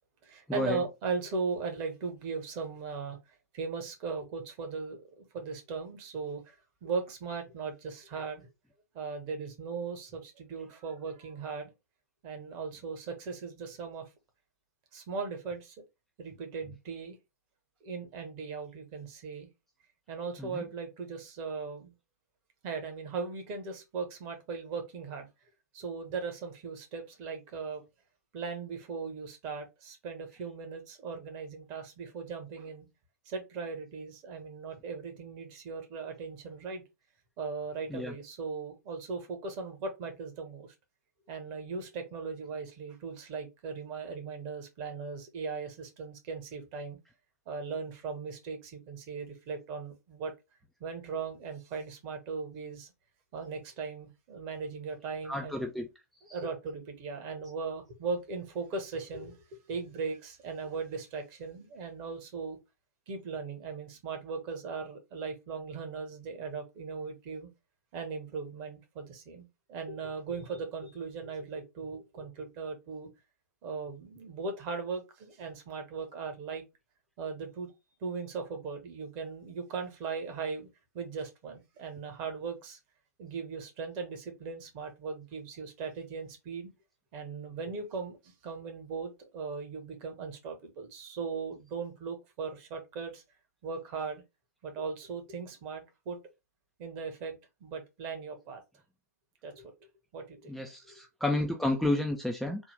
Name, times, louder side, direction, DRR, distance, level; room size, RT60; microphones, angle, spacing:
voice 1, 0.2-6.6 6.8-8.5 8.9-11.7 12.2-14.1 14.9-15.7 16.2-17.2 17.8-19.5 20.1-21.9 22.6-25.3 25.7-27.8 28.3-32.9 33.2-36.8 37.4-40.7 41.3-47.0 47.5-50.3 50.8-52.9 53.3-55.6 56.3-62.6 63.1-67.5 67.9-73.1 73.6-76.6 77.2-77.7 78.0-80.7 80.9-82.8 83.2-86.7 87.1-93.2 93.6-94.2 94.6-96.2 96.8-97.3 97.6-98.6 99.4-99.7 100.1-100.6 100.8-101.0, right 4 dB, 40° right, 1.2 m, -38 dB
voice 2, 55.3-55.9 56.3-56.4 100.5-102.6, left 1 dB, ahead, 0.4 m, -31 dB
3.7 x 2.3 x 3.3 m
figure-of-eight pair, 100°, 9 cm